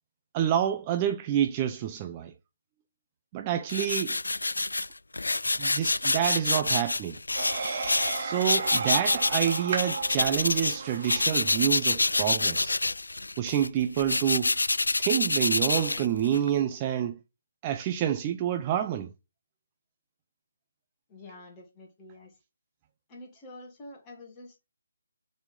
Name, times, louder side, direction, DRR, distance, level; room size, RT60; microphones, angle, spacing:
voice 1, 0.3-2.3 3.3-4.2 5.6-7.2 8.2-12.8 13.4-14.5 15.0-17.2 17.6-19.1, right 10 dB, 25° right, 0.5 m, -28 dB
sound 1, 3.7-10.8 11.0-16.5, left 2 dB, 70° left, 0.3 m, -27 dB
sound 2, 7.3-11.7, right 4 dB, 45° right, 1.9 m, -35 dB
voice 2, 21.1-22.3 23.1-24.7, left 2 dB, 20° left, 2.4 m, -47 dB
6.8 x 4.2 x 5.5 m
figure-of-eight pair, 145°, 0 cm